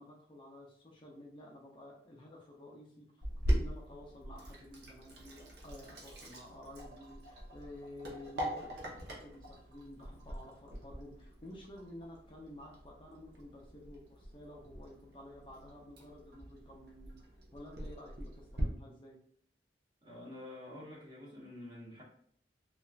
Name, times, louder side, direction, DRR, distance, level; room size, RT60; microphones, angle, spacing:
voice 1, 0.0-3.1 3.5-17.2 17.5-19.2, left 1 dB, 30° left, -2 dB, 0.5 m, -52 dB
Sink (filling or washing), 3.2-18.6, equal, 65° right, 0.7 m, -42 dB
voice 2, 20.0-22.0, left 1 dB, 25° right, -4 dB, 0.9 m, -48 dB
3.0 x 2.3 x 2.3 m, 0.63 s
head